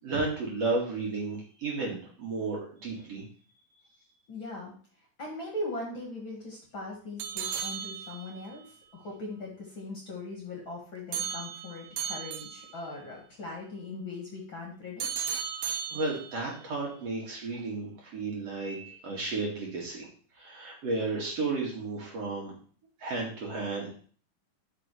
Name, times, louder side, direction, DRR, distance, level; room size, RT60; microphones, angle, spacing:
voice 1, 0.0-3.2 15.9-20.1 20.4-22.6 23.0-23.9, right 3 dB, 50° right, -3 dB, 3.0 m, -33 dB
voice 2, 4.3-4.7 5.2-15.1 17.5-17.6, left 2 dB, 45° left, -2 dB, 2.1 m, -40 dB
sound 1, 7.2-8.5 11.1-12.9 15.0-16.5, right 7 dB, 75° right, 1.7 m, -35 dB
12.5 x 5.6 x 3.3 m, 0.43 s
omnidirectional pair, 3.9 m